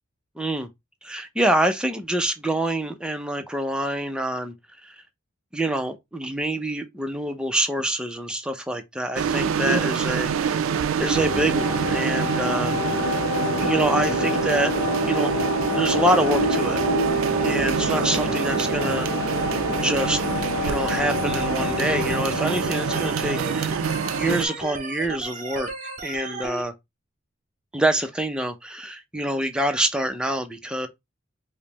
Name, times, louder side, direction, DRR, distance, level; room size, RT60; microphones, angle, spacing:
voice 1, 0.4-0.7 1.0-4.5 4.8-5.0 5.5-13.0 13.6-14.7 15.0-16.8 17.4-23.8 24.1-25.7 26.0-26.7 27.7-30.9, right 1 dB, 5° right, 0.5 m, -26 dB
sound 1, 9.2-24.5, right 7 dB, 90° right, 0.4 m, -26 dB
sound 2, 11.1-24.6, left 3 dB, 60° left, 0.7 m, -28 dB
Organ, 22.9-26.6, right 3 dB, 35° right, 0.8 m, -34 dB
5.1 x 2.1 x 2.9 m
head